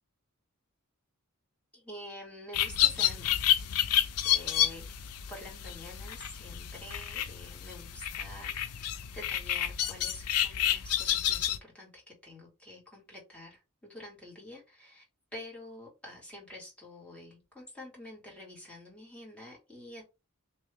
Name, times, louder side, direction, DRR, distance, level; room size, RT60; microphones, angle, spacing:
voice 1, 1.7-3.5 4.2-4.9 5.3-8.8 9.1-15.0 15.3-20.0, left 1 dB, 5° left, -3 dB, 1.6 m, -47 dB
sound 1, 2.5-11.6, left 11 dB, 85° left, 0.5 m, -30 dB
3.2 x 2.6 x 3.4 m, 0.26 s
head